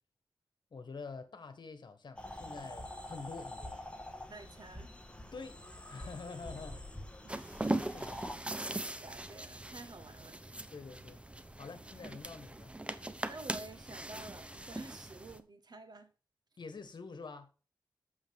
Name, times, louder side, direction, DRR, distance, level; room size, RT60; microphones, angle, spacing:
voice 1, 0.7-3.8 5.3-6.8 7.9-8.2 10.7-11.2 11.6-12.8 16.6-17.5, left 4 dB, 65° left, 1.5 m, -47 dB
sound 1, 2.2-8.4, left 1 dB, 15° left, 1.6 m, -46 dB
voice 2, 4.3-4.9 7.2-7.6 7.9-8.2 9.0-10.4 13.3-16.1, right 3 dB, 60° right, 1.6 m, -50 dB
sound 2, 7.3-15.4, right 1 dB, 15° right, 0.8 m, -40 dB
8.4 x 7.0 x 3.7 m
wide cardioid pair, 90°, 8 cm